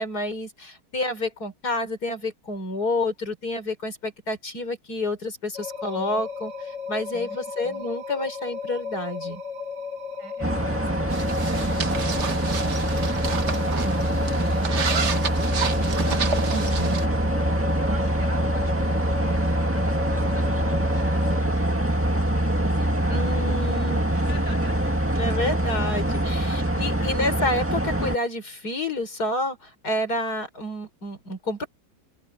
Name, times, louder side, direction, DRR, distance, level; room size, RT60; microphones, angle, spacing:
voice 1, 0.0-9.4 16.5-17.0 23.1-24.0 25.2-31.7, left 1 dB, 60° left, 5.2 m, -29 dB
sound 1, 5.5-21.4, left 5 dB, 80° left, 8.3 m, -35 dB
voice 2, 7.6-8.0 10.2-17.0 17.5-23.4 24.1-25.0 26.0-26.7, right 1 dB, 75° right, 8.2 m, -45 dB
sound 2, 10.4-28.2, right 1 dB, 10° right, 1.5 m, -24 dB
sound 3, 11.1-17.0, right 6 dB, 45° right, 1.4 m, -31 dB
open air
omnidirectional pair, 1.9 m